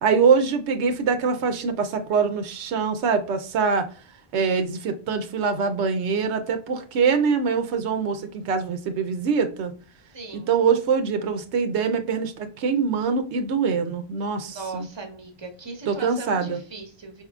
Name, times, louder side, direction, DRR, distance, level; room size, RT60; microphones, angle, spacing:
voice 1, 0.0-3.9 4.3-9.7 10.3-14.9 15.9-16.6, right 5 dB, 90° right, 7 dB, 0.9 m, -23 dB
voice 2, 10.1-10.5 14.5-17.2, right 3 dB, 25° right, 3 dB, 0.9 m, -38 dB
4.8 x 3.6 x 2.3 m, 0.41 s
omnidirectional pair, 1.1 m